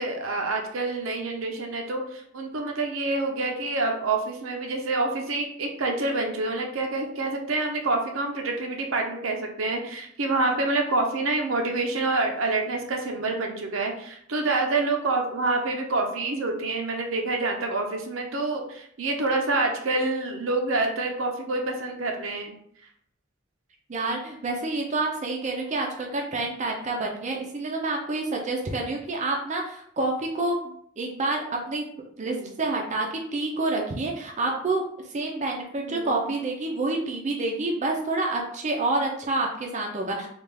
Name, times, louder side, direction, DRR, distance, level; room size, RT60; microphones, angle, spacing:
voice 1, 0.0-22.5 32.2-32.5 35.8-36.1, right 2 dB, 75° right, 2 dB, 0.6 m, -27 dB
voice 2, 23.9-31.9 32.2-34.8 35.1-40.3, right 2 dB, 35° right, 0 dB, 0.5 m, -28 dB
3.3 x 2.4 x 3.4 m, 0.67 s
head